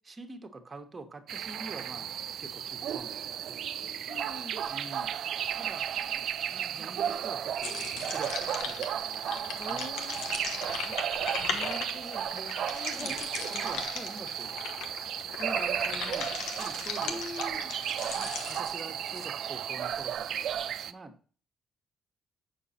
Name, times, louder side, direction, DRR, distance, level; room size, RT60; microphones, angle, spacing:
voice 1, 0.0-2.1 2.4-4.0 4.7-5.9 6.4-10.4 12.3-12.6 12.9-13.2 13.5-14.5 15.2-17.3 17.9-20.6 20.8-21.1, right 2 dB, 30° right, 6 dB, 1.1 m, -46 dB
sound 1, 1.3-20.9, right 9 dB, 70° right, 0.4 m, -34 dB
voice 2, 4.1-4.6 9.6-10.2 10.8-11.0 11.4-12.3 12.7-13.1 13.5-14.1 17.0-17.7, left 2 dB, 25° left, 11 dB, 0.9 m, -43 dB
sound 2, 7.6-19.3, left 6 dB, 90° left, 0.9 m, -38 dB
7.0 x 6.0 x 4.2 m, 0.41 s
cardioid pair, 90°, 0 cm